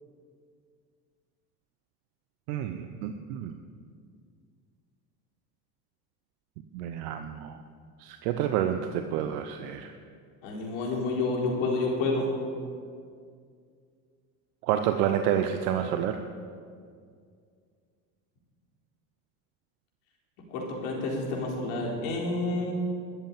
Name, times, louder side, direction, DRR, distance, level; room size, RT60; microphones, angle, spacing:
voice 1, 2.5-3.5 6.7-7.6 8.0-9.9 14.6-16.2, right 10 dB, 70° right, 8 dB, 0.9 m, -29 dB
voice 2, 10.4-12.3 20.5-22.7, left 2 dB, 70° left, -2 dB, 4.2 m, -29 dB
13.0 x 8.0 x 8.9 m, 2.2 s
hypercardioid pair, 80°, 46 cm